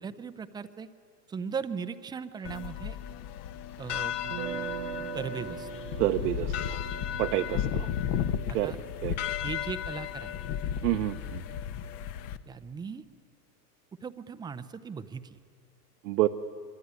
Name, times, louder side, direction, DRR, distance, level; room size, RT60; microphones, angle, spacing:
voice 1, 0.0-0.9 1.3-3.0 3.8-4.2 5.1-5.7 8.5-8.8 9.4-10.3 12.5-13.0 14.0-15.4, right 6 dB, 10° right, 12 dB, 0.6 m, -38 dB
sound 1, 2.4-12.4, left 9 dB, 45° left, 1.2 m, -34 dB
sound 2, 4.2-10.2, right 12 dB, 50° right, 1.4 m, -42 dB
voice 2, 6.0-6.8 7.2-7.9 8.5-8.7 9.0-9.2 10.8-11.4 16.0-16.3, right 15 dB, 70° right, 5 dB, 1.1 m, -28 dB
24.5 x 24.5 x 9.6 m, 2.2 s
supercardioid pair, 135°, 48 cm